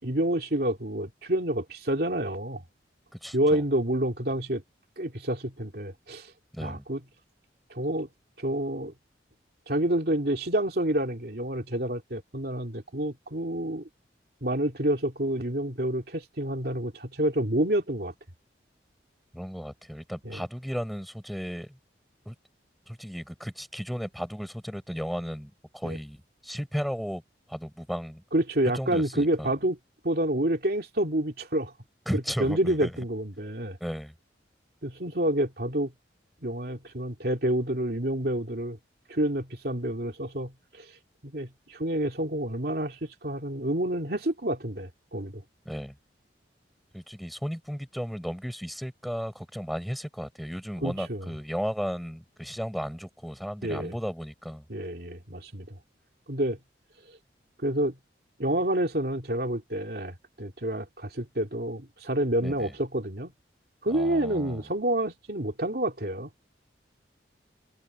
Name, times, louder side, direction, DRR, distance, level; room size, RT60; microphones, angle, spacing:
voice 1, 0.0-2.6 3.3-4.6 5.0-6.3 6.6-7.0 7.7-8.1 8.4-8.9 9.7-13.9 14.4-18.1 20.2-20.4 25.8-26.0 28.3-29.8 30.0-31.7 32.4-33.8 34.8-35.9 36.4-38.8 39.1-40.9 41.2-45.4 50.8-51.3 53.6-53.9 54.7-55.8 56.3-56.6 57.1-57.2 57.6-57.9 58.4-63.3 63.8-66.3, right 1 dB, 55° right, 2.9 m, -28 dB
voice 2, 3.2-3.6 6.5-6.8 19.3-21.8 22.2-22.3 22.9-27.2 27.5-28.2 28.7-29.5 32.1-32.9 33.8-34.1 45.6-45.9 46.9-54.6 62.4-62.7 63.9-64.6, equal, ahead, 4.7 m, -35 dB
head